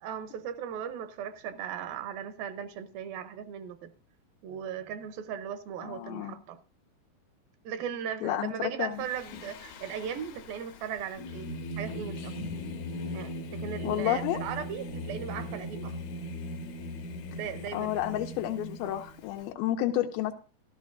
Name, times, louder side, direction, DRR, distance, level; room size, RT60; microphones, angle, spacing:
voice 1, 0.0-3.9 4.4-6.6 7.6-11.5 11.8-12.3 13.1-15.9 17.3-17.9, right 8 dB, 80° right, 2.5 m, -37 dB
voice 2, 5.8-6.4 8.2-9.0 13.8-14.4 17.7-20.3, left 13 dB, 85° left, 2.5 m, -30 dB
Singing, 9.0-19.4, left 1 dB, 70° left, 2.0 m, -39 dB
14.0 x 13.0 x 2.5 m
omnidirectional pair, 4.3 m